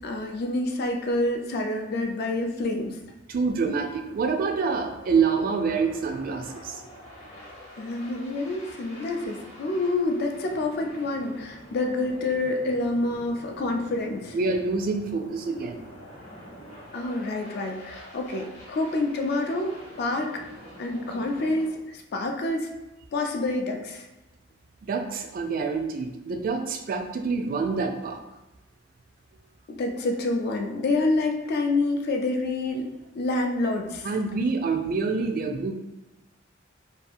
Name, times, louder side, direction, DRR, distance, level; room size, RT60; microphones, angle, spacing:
voice 1, 0.0-3.0 7.8-14.4 16.9-20.4 20.8-22.7 23.1-24.1 29.7-32.9 33.1-34.1, left 2 dB, 55° left, 3 dB, 0.4 m, -27 dB
sound 1, 3.3-21.7, equal, 35° left, 0.8 m, -46 dB
voice 2, 3.3-6.8 14.3-15.8 24.9-28.2 34.0-35.7, right 4 dB, 45° right, 4 dB, 0.3 m, -26 dB
2.7 x 2.3 x 2.5 m, 1.0 s
head